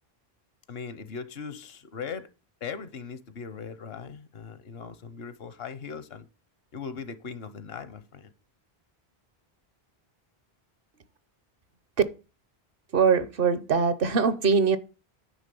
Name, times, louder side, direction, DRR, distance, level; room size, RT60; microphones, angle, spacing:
voice 1, 0.7-2.3 2.6-6.3 6.7-8.3, left 6 dB, 70° left, 1.0 m, -39 dB
voice 2, 12.9-14.8, right 5 dB, 60° right, 0.9 m, -22 dB
9.4 x 3.6 x 6.8 m
omnidirectional pair, 1.1 m